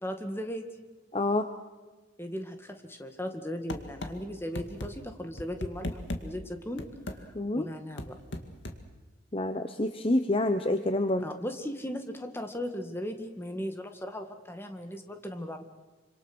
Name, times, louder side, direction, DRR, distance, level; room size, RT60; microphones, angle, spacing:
voice 1, 0.0-0.7 2.2-6.9 7.1-7.3 7.6-8.2 11.2-15.6, equal, 10° left, 6 dB, 2.0 m, -37 dB
voice 2, 1.1-1.5 7.3-7.7 9.3-11.2, left 1 dB, 30° left, 8 dB, 0.9 m, -27 dB
sound 1, 3.7-4.1 4.6-4.9 5.4-6.2 6.8-7.2 8.0-8.8, left 1 dB, 75° left, 2.2 m, -35 dB
26.5 x 26.0 x 6.2 m, 1.2 s
head